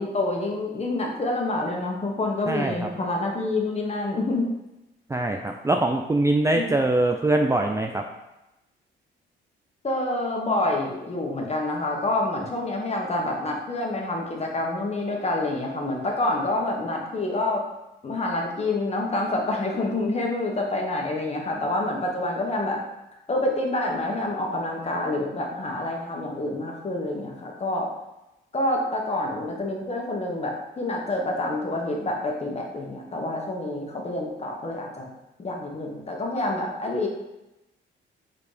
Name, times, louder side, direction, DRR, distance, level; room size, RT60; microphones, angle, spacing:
voice 1, 0.0-4.5 6.5-6.7 9.8-17.6 18.0-22.8 23.3-27.9 28.5-35.1 35.4-37.1, left 2 dB, 30° left, 0 dB, 1.6 m, -27 dB
voice 2, 2.5-2.9 5.1-8.0, right 2 dB, 15° right, 3 dB, 0.4 m, -23 dB
5.2 x 4.2 x 5.2 m, 0.96 s
cardioid pair, 90°, 20 cm